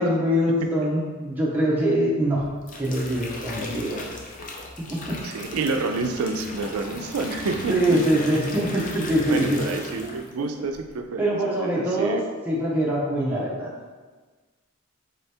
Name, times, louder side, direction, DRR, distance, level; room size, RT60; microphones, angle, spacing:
voice 1, 0.0-2.5 2.8-4.1 4.9-5.2 7.7-9.6 11.2-12.2 12.5-13.7, equal, 10° right, -6 dB, 0.5 m, -23 dB
sound 1, 2.4-10.4 10.7-11.1, left 2 dB, 40° left, 0.5 m, -37 dB
voice 2, 5.2-8.0 9.3-12.2, right 3 dB, 85° right, 5 dB, 0.4 m, -29 dB
4.0 x 2.7 x 3.3 m, 1.3 s
head